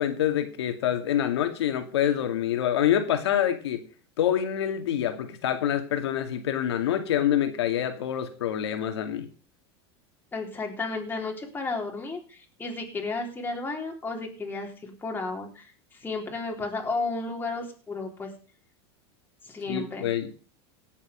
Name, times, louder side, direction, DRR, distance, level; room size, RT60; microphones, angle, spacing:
voice 1, 0.0-3.8 4.2-9.3 19.7-20.4, left 10 dB, 85° left, 7 dB, 2.4 m, -26 dB
voice 2, 10.3-18.3 19.5-20.1, left 3 dB, 15° left, 1 dB, 3.7 m, -33 dB
17.5 x 7.4 x 5.2 m, 0.39 s
supercardioid pair, 120°, 14 cm